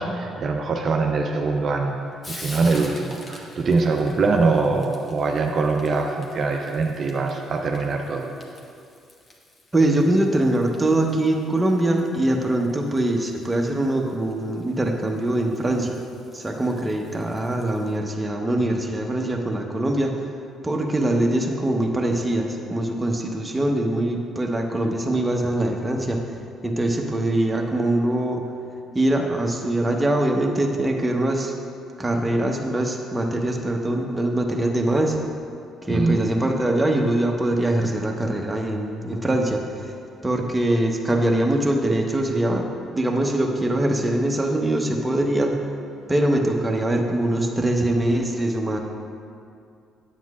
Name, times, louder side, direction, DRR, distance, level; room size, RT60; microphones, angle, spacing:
voice 1, 0.0-2.0 2.3-8.4 35.9-36.2, right 3 dB, 50° right, 1 dB, 0.5 m, -23 dB
Frying (food), 1.0-18.0, left 1 dB, 35° left, 1.3 m, -47 dB
voice 2, 9.7-16.0 16.3-20.1 20.6-26.3 26.6-28.4 28.9-31.5 32.0-35.2 35.8-39.9 40.2-42.7 42.9-45.5 46.1-48.8, right 1 dB, 15° right, 1 dB, 1.0 m, -23 dB
9.1 x 8.2 x 2.4 m, 2.4 s
hypercardioid pair, 55°, 0 cm